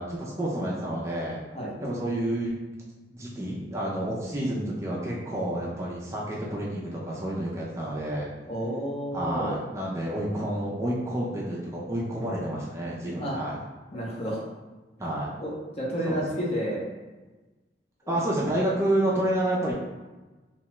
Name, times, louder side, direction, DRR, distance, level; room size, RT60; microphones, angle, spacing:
voice 1, 0.0-1.4 1.8-2.6 3.1-8.3 9.1-13.6 15.0-15.3 16.1-16.4 18.1-19.7, right 1 dB, 15° right, -5 dB, 0.4 m, -29 dB
voice 2, 8.5-9.6 13.2-13.4 13.9-14.4 15.4-16.8 18.0-18.2, equal, 35° left, -4 dB, 0.7 m, -31 dB
2.8 x 2.2 x 3.0 m, 1.2 s
head